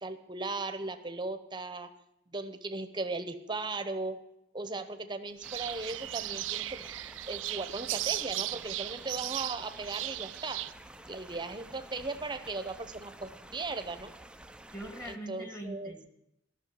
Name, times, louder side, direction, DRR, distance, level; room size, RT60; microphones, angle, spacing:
voice 1, 0.0-1.9 2.3-4.2 4.5-6.8 7.3-10.6 11.1-14.1 15.1-15.9, right 3 dB, 25° right, 10 dB, 0.8 m, -37 dB
sound 1, 5.4-15.2, right 1 dB, 5° right, 0.4 m, -51 dB
sound 2, 5.4-10.7, right 16 dB, 80° right, 0.4 m, -36 dB
voice 2, 14.7-16.1, right 1 dB, 15° left, 5 dB, 1.6 m, -42 dB
12.5 x 6.4 x 9.6 m, 0.84 s
head